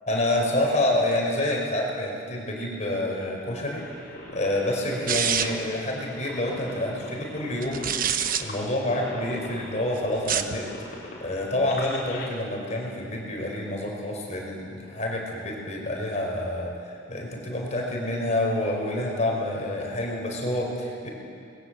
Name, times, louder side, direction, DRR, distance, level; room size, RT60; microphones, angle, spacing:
voice 1, 0.1-3.8 4.3-7.9 8.2-21.1, left 1 dB, 40° left, 0 dB, 5.0 m, -28 dB
sound 1, 3.6-12.3, left 2 dB, 55° left, 3.9 m, -42 dB
sound 2, 5.1-5.7 7.6-8.4 10.1-10.6, right 8 dB, 50° right, 1.1 m, -26 dB
26.5 x 21.0 x 7.8 m, 2.5 s
head